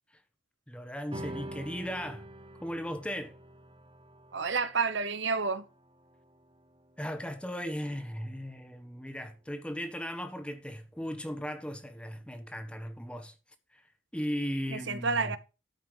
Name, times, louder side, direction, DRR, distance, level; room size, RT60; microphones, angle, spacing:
voice 1, 0.7-2.3 2.6-3.3 7.0-13.3 13.7-13.9 14.1-15.4, equal, 5° left, 1.2 m, -37 dB
sound 1, 1.1-7.8, right 1 dB, 25° right, 1.1 m, -46 dB
voice 2, 4.3-5.7 14.7-15.4, right 4 dB, 65° right, 1.0 m, -30 dB
12.5 x 5.5 x 5.6 m
head